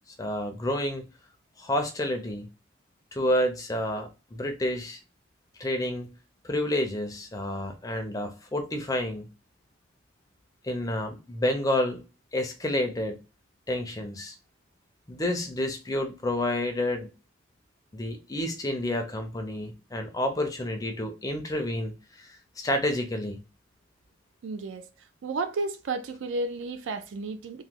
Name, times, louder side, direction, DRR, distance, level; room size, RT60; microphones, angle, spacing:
voice 1, 0.2-1.0 1.6-2.5 3.1-5.0 5.6-6.1 6.4-9.3 10.6-12.0 12.3-13.2 13.7-14.3 15.1-17.1 17.9-23.4, left 1 dB, 15° left, 0.4 m, -29 dB
voice 2, 24.4-24.9 25.2-27.6, right 3 dB, 70° right, 0.3 m, -32 dB
2.9 x 2.1 x 3.5 m
head